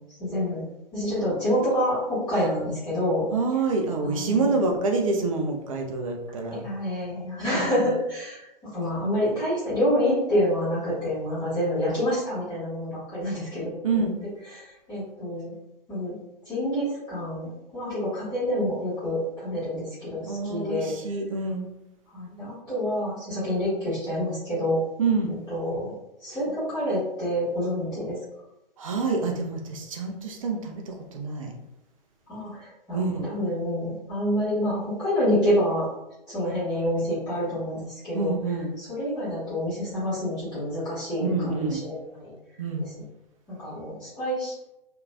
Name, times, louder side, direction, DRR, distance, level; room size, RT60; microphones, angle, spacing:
voice 1, 0.2-0.6 0.9-3.2 4.0-4.6 6.6-14.1 14.5-15.5 15.9-16.2 16.4-20.9 22.1-24.8 25.3-25.9 26.2-28.2 32.3-35.9 36.3-38.3 38.8-42.3 43.5-44.5, equal, 15° left, -13 dB, 1.3 m, -27 dB
voice 2, 3.3-6.6 13.8-14.1 20.3-21.7 25.0-25.3 28.8-31.5 32.9-33.3 38.1-38.7 41.2-41.8 42.6-42.9, right 3 dB, 35° right, 3 dB, 0.5 m, -27 dB
2.8 x 2.6 x 2.2 m, 0.89 s
figure-of-eight pair, 120°, 29 cm